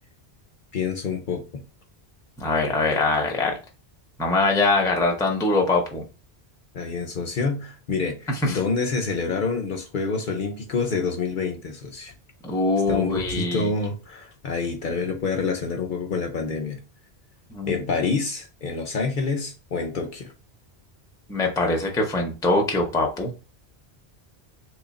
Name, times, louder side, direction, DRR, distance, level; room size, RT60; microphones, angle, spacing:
voice 1, 0.7-1.6 6.7-12.1 12.9-16.8 17.7-20.3, left 4 dB, 55° left, 0.7 m, -27 dB
voice 2, 2.4-3.5 4.2-6.1 8.4-8.6 12.4-13.7 17.5-17.8 21.3-23.4, left 2 dB, 5° left, 0.5 m, -23 dB
3.1 x 2.3 x 4.0 m
omnidirectional pair, 1.1 m